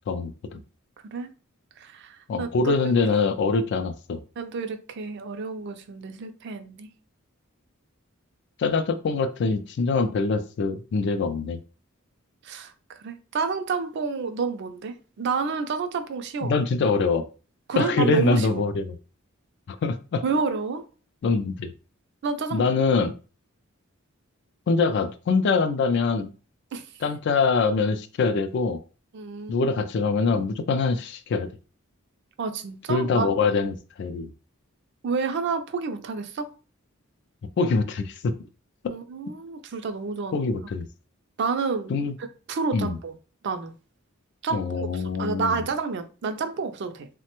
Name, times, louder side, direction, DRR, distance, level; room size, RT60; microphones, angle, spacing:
voice 1, 0.1-0.6 2.3-4.2 8.6-11.6 16.4-17.2 17.8-18.9 19.7-20.2 21.2-21.7 22.5-23.1 24.7-26.3 27.0-28.8 29.5-31.5 32.9-34.3 37.6-38.3 38.8-38.9 40.3-40.9 41.9-42.1 42.7-43.0 44.5-45.6, left 4 dB, 55° left, 0.3 m, -24 dB
voice 2, 1.8-2.9 4.4-6.9 12.4-12.7 13.0-16.6 17.7-18.6 20.2-20.8 22.2-22.7 26.7-26.9 29.1-29.7 32.4-33.3 35.0-36.5 38.9-40.4 41.4-41.9 42.5-43.2 43.4-43.7 44.4-47.1, right 4 dB, 55° right, 0.4 m, -29 dB
3.2 x 2.1 x 2.9 m
head